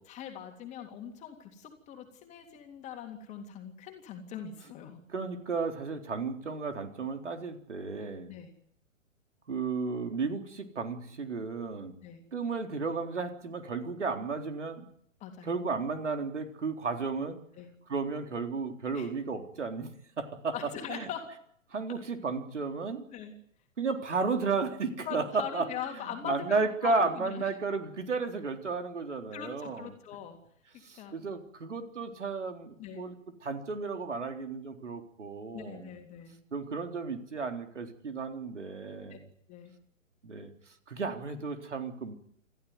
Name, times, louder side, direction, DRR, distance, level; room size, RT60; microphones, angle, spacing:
voice 1, 0.0-5.0 8.3-8.5 12.0-12.2 15.2-15.5 17.6-17.7 18.9-19.1 20.5-21.3 23.1-23.3 25.0-27.5 29.3-30.4 30.9-31.1 32.8-33.1 35.5-36.4 39.1-39.2 39.5-39.7, left 8 dB, 15° left, 5 dB, 3.3 m, -41 dB
voice 2, 5.1-8.3 9.5-11.9 12.3-14.9 15.4-17.4 17.9-20.5 20.9-21.1 21.7-23.1 23.8-25.6 26.2-29.9 30.8-33.1 33.4-35.9 36.5-39.3 40.2-40.5 40.9-42.2, right 4 dB, 60° right, 6 dB, 4.0 m, -33 dB
28.0 x 15.0 x 9.6 m, 0.69 s
figure-of-eight pair, 125°, 40 cm